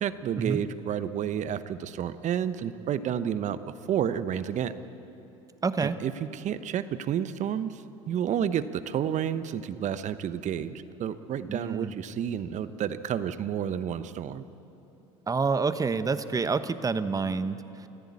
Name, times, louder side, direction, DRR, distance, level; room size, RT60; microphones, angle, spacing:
voice 1, 0.0-3.6 3.9-4.7 5.8-14.4, right 9 dB, 45° right, 12 dB, 1.0 m, -30 dB
voice 2, 5.6-6.0 11.5-11.9 15.3-17.9, right 4 dB, 20° right, 12 dB, 1.1 m, -28 dB
25.5 x 15.0 x 8.5 m, 3.0 s
hypercardioid pair, 75°, 17 cm